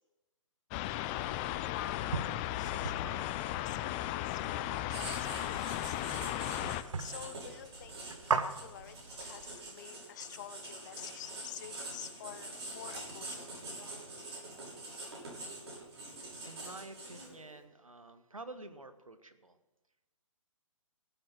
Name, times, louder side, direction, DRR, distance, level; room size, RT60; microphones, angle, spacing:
sound 1, 0.7-6.8, left 14 dB, 20° left, 0.4 m, -36 dB
voice 1, 1.1-2.2 2.4-3.2 3.5-6.0 7.0-13.6, left 11 dB, 35° left, 11 dB, 0.9 m, -48 dB
sound 2, 2.1-9.6, right 5 dB, 70° right, 1.0 m, -40 dB
Writing, 4.9-17.5, right 2 dB, 55° right, 6.3 m, -45 dB
voice 2, 16.4-19.6, right 2 dB, 85° right, 10 dB, 1.3 m, -49 dB
16.5 x 8.2 x 6.2 m, 1.1 s
figure-of-eight pair, 130°, 17 cm